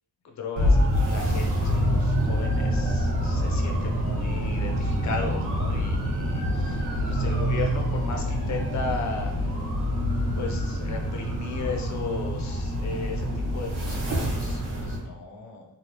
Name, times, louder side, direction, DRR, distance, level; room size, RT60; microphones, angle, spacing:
voice 1, 0.2-9.5 10.3-15.6, left 4 dB, 40° left, 1 dB, 0.6 m, -36 dB
sound 1, 0.6-15.0, equal, 65° right, 1.2 m, -26 dB
3.1 x 2.7 x 2.9 m, 0.85 s
wide cardioid pair, 125°, 42 cm